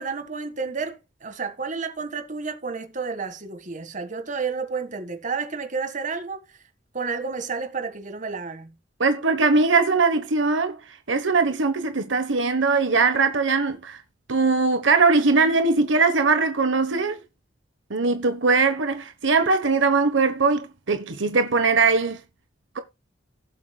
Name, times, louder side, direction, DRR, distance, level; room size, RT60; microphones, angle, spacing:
voice 1, 0.0-6.4 6.9-8.7, right 5 dB, 40° right, 1.8 m, -31 dB
voice 2, 9.0-10.8 11.1-14.0 14.3-17.2 17.9-22.2, right 4 dB, 75° right, 1.2 m, -21 dB
17.5 x 7.5 x 2.3 m
head